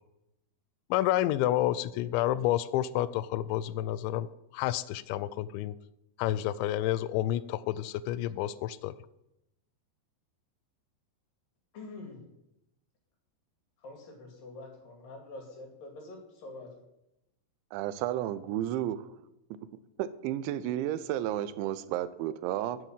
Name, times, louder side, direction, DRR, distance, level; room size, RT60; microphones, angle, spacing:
voice 1, 0.9-4.3 4.5-5.8 6.2-8.9, left 13 dB, 85° left, 17 dB, 2.8 m, -29 dB
voice 2, 11.7-12.2 13.8-16.7, left 2 dB, 55° left, 2 dB, 3.6 m, -46 dB
voice 3, 17.7-19.1 20.0-22.8, right 12 dB, 90° right, 14 dB, 3.1 m, -32 dB
10.0 x 8.0 x 7.3 m, 0.87 s
omnidirectional pair, 5.2 m